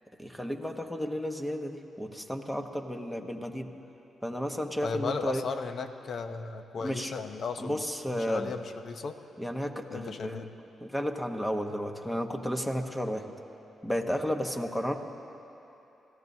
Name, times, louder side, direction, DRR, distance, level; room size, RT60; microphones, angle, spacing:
voice 1, 0.2-3.7 4.2-5.4 6.8-7.1 7.6-8.5 9.4-10.5 10.8-13.2 13.8-15.0, equal, 10° left, 5 dB, 1.2 m, -32 dB
voice 2, 4.8-7.8 8.1-9.2 9.9-10.5, left 4 dB, 60° left, 8 dB, 0.8 m, -35 dB
26.0 x 15.0 x 2.8 m, 2.9 s
cardioid pair, 75°, 0 cm